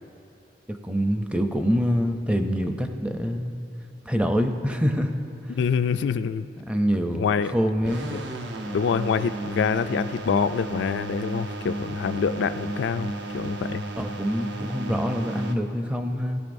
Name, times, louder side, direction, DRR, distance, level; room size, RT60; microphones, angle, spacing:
voice 1, 0.7-3.6 4.1-5.1 6.6-8.1 14.0-16.4, equal, 5° right, 6 dB, 0.5 m, -25 dB
voice 2, 5.5-6.5 7.1-7.5 8.1-8.2 8.7-13.8, left 6 dB, 70° left, 11 dB, 0.3 m, -26 dB
sound 1, 7.8-15.5, right 2 dB, 75° right, 0.8 m, -33 dB
17.5 x 12.0 x 2.6 m, 2.8 s
head